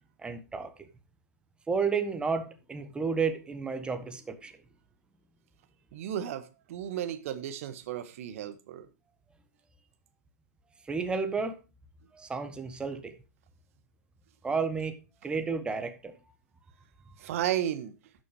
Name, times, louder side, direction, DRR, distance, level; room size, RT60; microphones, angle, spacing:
voice 1, 0.2-0.7 1.7-4.5 10.9-11.6 12.1-13.2 14.4-16.1, right 5 dB, 10° right, 1.4 m, -32 dB
voice 2, 5.9-8.9 17.2-17.9, right 11 dB, 55° right, 1.5 m, -34 dB
11.5 x 6.2 x 4.8 m
hypercardioid pair, 120°, 9 cm